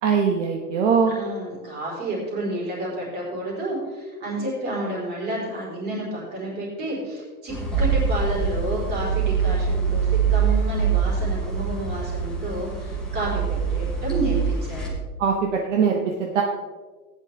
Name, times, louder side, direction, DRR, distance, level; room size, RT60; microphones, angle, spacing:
voice 1, 0.0-1.2 15.2-16.4, right 6 dB, 50° right, 1 dB, 1.3 m, -21 dB
voice 2, 1.1-14.9, right 1 dB, 20° right, -5 dB, 3.9 m, -30 dB
sound 1, 7.5-14.9, right 6 dB, ahead, 1.1 m, -24 dB
15.5 x 9.9 x 3.3 m, 1.4 s
supercardioid pair, 175°, 46 cm